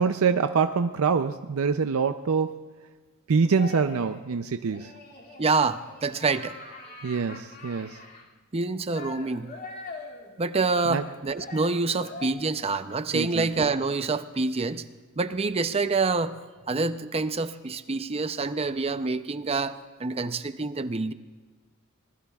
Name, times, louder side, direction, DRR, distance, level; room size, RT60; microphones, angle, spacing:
voice 1, 0.0-2.6 3.3-4.9 7.0-8.0 10.9-11.0 13.1-13.5, right 5 dB, 75° right, 9 dB, 0.5 m, -25 dB
sound 1, 3.6-4.2 4.7-8.2 8.9-12.3, left 3 dB, 50° left, 2.5 m, -43 dB
voice 2, 5.4-6.6 8.5-9.5 10.4-14.8 15.2-16.3 16.7-21.1, right 3 dB, 30° right, 11 dB, 0.5 m, -27 dB
25.0 x 20.0 x 2.4 m, 1.4 s
head